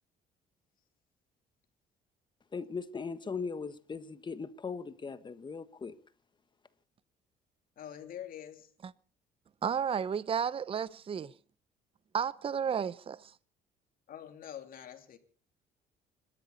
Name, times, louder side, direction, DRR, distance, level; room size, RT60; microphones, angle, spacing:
voice 1, 2.5-5.9, left 5 dB, 25° left, 1.5 m, -39 dB
voice 2, 7.8-8.7 14.1-15.2, left 10 dB, 60° left, 3.2 m, -45 dB
voice 3, 9.6-11.3 12.1-13.3, right 7 dB, 35° right, 0.7 m, -32 dB
26.0 x 13.0 x 4.2 m
cardioid pair, 110°, 17 cm